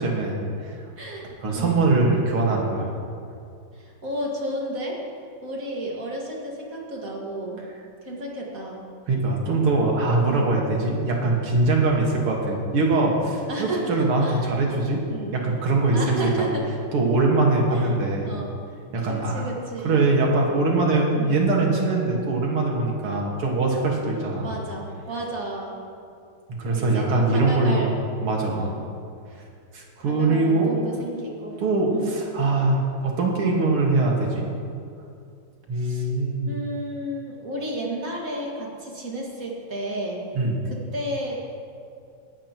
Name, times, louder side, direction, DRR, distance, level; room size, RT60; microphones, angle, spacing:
voice 1, 0.0-0.8 1.4-2.9 9.1-15.0 15.3-16.5 16.9-18.3 18.9-19.5 19.8-24.5 26.6-27.9 28.2-28.7 29.7-30.8 31.6-34.5 35.7-36.5 40.3-40.6, right 3 dB, 85° right, -1 dB, 2.7 m, -22 dB
voice 2, 1.0-1.9 3.7-5.0 5.4-7.6 8.0-8.8 10.2-10.5 13.5-14.5 15.1-15.4 15.9-16.6 17.7-17.9 18.2-18.5 19.1-20.3 21.1-21.4 24.4-25.8 26.6-27.9 28.5-28.9 30.0-31.6 31.9-32.1 35.7-36.1 36.5-40.2 40.6-41.5, right 1 dB, 40° right, -3 dB, 2.3 m, -32 dB
19.5 x 12.5 x 3.0 m, 2.4 s
omnidirectional pair, 2.4 m